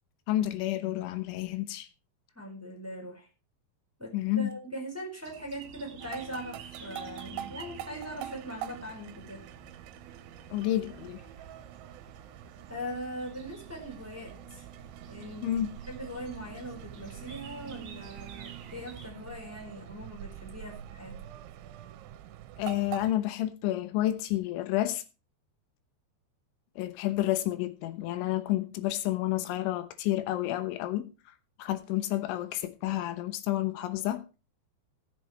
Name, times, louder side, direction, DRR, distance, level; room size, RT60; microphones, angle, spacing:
voice 1, 0.3-1.9 4.1-4.5 10.5-11.2 15.4-15.7 22.6-25.0 26.8-31.1 31.6-34.2, left 14 dB, 90° left, 3.4 m, -30 dB
voice 2, 2.3-3.3 4.0-9.4 12.7-14.6 15.1-15.5 15.9-21.2, equal, 5° right, 3.2 m, -41 dB
sound 1, 5.2-19.1, right 7 dB, 50° right, 2.7 m, -49 dB
sound 2, 6.0-23.1, right 11 dB, 90° right, 3.2 m, -45 dB
18.0 x 7.6 x 3.1 m
omnidirectional pair, 5.3 m